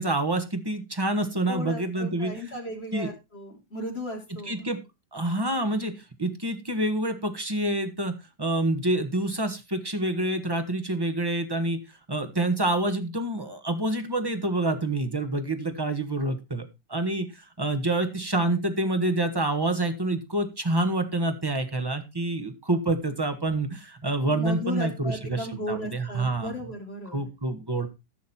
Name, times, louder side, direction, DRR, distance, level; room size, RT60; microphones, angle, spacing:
voice 1, 0.0-2.4 2.9-3.1 4.4-4.8 5.1-5.9 6.2-8.1 8.4-11.8 12.1-26.5 27.1-27.9, right 2 dB, 15° right, 7 dB, 1.4 m, -27 dB
voice 2, 1.5-4.7 24.3-27.3, left 1 dB, 35° left, 1 dB, 3.5 m, -35 dB
14.5 x 6.3 x 4.3 m, 0.26 s
omnidirectional pair, 1.8 m